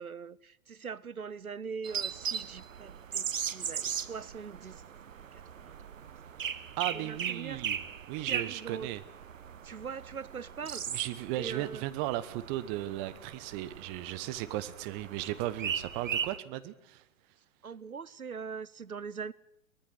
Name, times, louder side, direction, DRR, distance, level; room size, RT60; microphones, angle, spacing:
voice 1, 0.0-4.8 5.3-5.8 6.9-7.6 8.2-8.9 9.6-10.9 11.3-11.8 17.6-19.3, right 6 dB, 85° right, 0.7 m, -42 dB
sound 1, 1.8-16.4, right 8 dB, 65° right, 1.1 m, -38 dB
voice 2, 6.8-7.8 8.1-9.0 10.9-17.0, right 14 dB, 25° right, 1.1 m, -36 dB
23.5 x 19.0 x 6.4 m
figure-of-eight pair, 110°, 42 cm